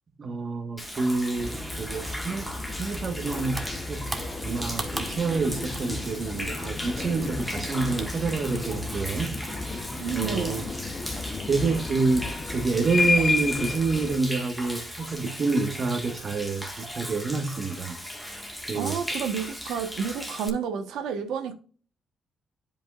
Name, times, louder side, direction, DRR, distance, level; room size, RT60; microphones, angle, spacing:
voice 1, 0.2-2.5 2.8-4.1 4.4-9.3 10.1-10.6 11.5-18.0 18.7-19.0, right 4 dB, 45° right, 1.3 m, -28 dB
Human voice / Rain / Stream, 0.8-20.5, equal, 5° left, 1.6 m, -37 dB
sound 1, 1.4-14.2, left 3 dB, 30° left, 0.8 m, -32 dB
sound 2, 1.5-10.6, right 2 dB, 15° right, 1.3 m, -41 dB
voice 2, 10.0-10.6 18.7-21.5, right 7 dB, 80° right, 1.1 m, -30 dB
10.5 x 5.3 x 2.4 m
cardioid pair, 90°, 0 cm